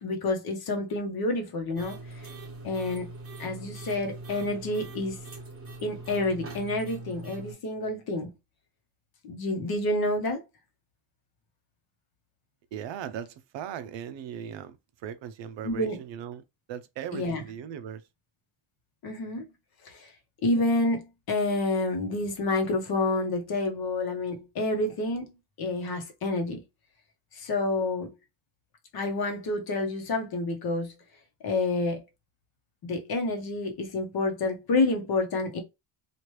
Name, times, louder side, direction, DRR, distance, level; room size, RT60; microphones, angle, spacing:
voice 1, 0.0-2.0 2.6-3.1 3.4-5.2 5.8-8.3 9.2-10.4 15.6-16.0 17.1-17.4 19.0-19.5 19.8-20.1 20.4-26.6 27.3-28.1 28.9-30.9 31.4-32.0 32.8-35.6, left 2 dB, 45° left, 0.9 m, -28 dB
sound 1, 1.8-7.5, right 2 dB, 25° right, 1.2 m, -42 dB
voice 2, 12.7-14.8 15.0-16.4 16.7-18.0, right 9 dB, 60° right, 0.5 m, -38 dB
3.1 x 2.5 x 3.0 m
cardioid pair, 175°, 50 cm